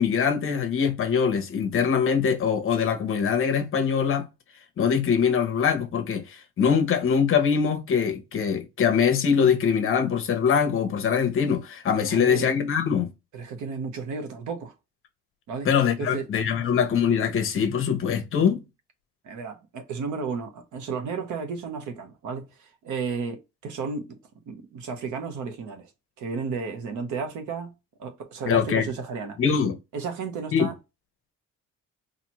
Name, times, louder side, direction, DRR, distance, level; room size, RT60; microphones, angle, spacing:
voice 1, 0.0-4.3 4.8-13.1 15.6-18.6 28.5-28.9 29.4-29.8 30.5-30.7, left 7 dB, 45° left, 0.9 m, -23 dB
voice 2, 12.1-12.5 13.3-14.7 15.5-15.7 16.0-16.2 19.2-24.2 24.5-25.9 26.2-27.7 28.0-29.4 29.9-30.8, right 5 dB, 70° right, 1.1 m, -33 dB
4.3 x 2.6 x 3.0 m
cardioid pair, 175°, 31 cm